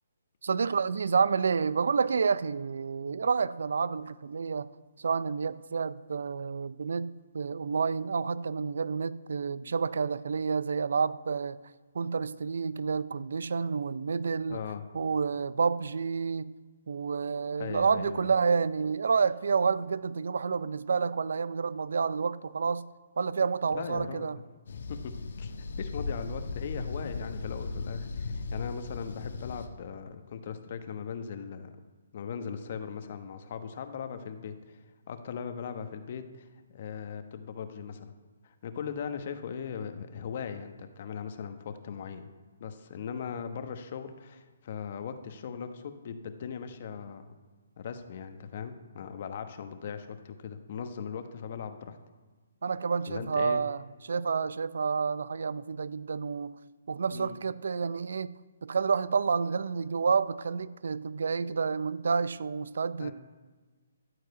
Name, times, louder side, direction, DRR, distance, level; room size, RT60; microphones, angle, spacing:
voice 1, 0.4-4.7 5.0-11.6 11.9-14.6 14.9-16.5 16.9-22.9 23.2-24.4 52.6-56.6 56.9-58.3 58.6-63.1, right 5 dB, 70° right, 18 dB, 0.4 m, -29 dB
voice 2, 14.5-14.9 17.6-18.3 23.6-24.3 24.9-25.1 25.4-25.5 25.8-31.7 32.1-34.8 35.1-38.1 38.4-42.3 42.6-47.2 47.8-52.0 53.1-53.6 57.1-57.4 63.0-63.1, left 7 dB, 50° left, 8 dB, 1.0 m, -39 dB
sound 1, 24.7-29.7, left 3 dB, 70° left, 1.1 m, -37 dB
14.0 x 4.9 x 8.1 m, 1.4 s
hypercardioid pair, 145°, 0 cm